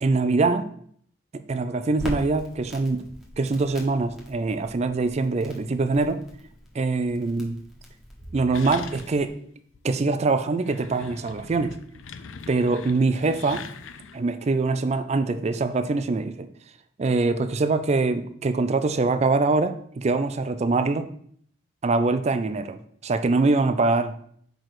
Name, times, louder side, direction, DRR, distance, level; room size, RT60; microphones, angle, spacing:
voice 1, 0.0-0.7 1.3-3.0 3.4-6.2 6.7-7.6 8.3-9.3 9.8-11.7 12.5-13.6 14.1-16.5 17.0-21.1 21.8-24.1, right 3 dB, 35° right, 10 dB, 0.4 m, -23 dB
Crackle, 2.0-9.3, equal, ahead, 1.2 m, -41 dB
sound 1, 8.5-9.4 9.7-9.8 10.5-14.3, left 6 dB, 75° left, 0.5 m, -41 dB
4.7 x 4.6 x 5.9 m, 0.64 s
head